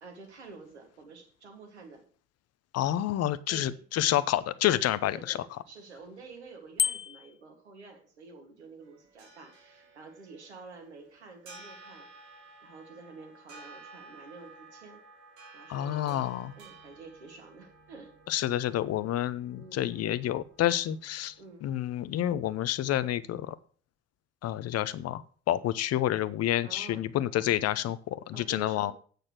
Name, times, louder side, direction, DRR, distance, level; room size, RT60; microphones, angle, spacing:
voice 1, 0.0-2.0 3.5-3.8 5.0-12.1 12.6-15.0 15.5-18.1 19.6-20.0 21.4-21.7 26.6-27.0 28.3-28.9, right 4 dB, 85° right, 4 dB, 1.9 m, -49 dB
voice 2, 2.7-5.4 15.7-16.5 18.3-21.3 21.6-23.6 24.4-25.2 25.5-28.9, left 12 dB, 50° left, 16 dB, 0.8 m, -29 dB
Bicycle bell, 6.8-7.4, left 7 dB, 15° left, 0.3 m, -29 dB
sound 1, 8.8-21.5, right 3 dB, 60° right, 3.3 m, -54 dB
8.6 x 6.6 x 6.0 m, 0.43 s
figure-of-eight pair, 55°, 33 cm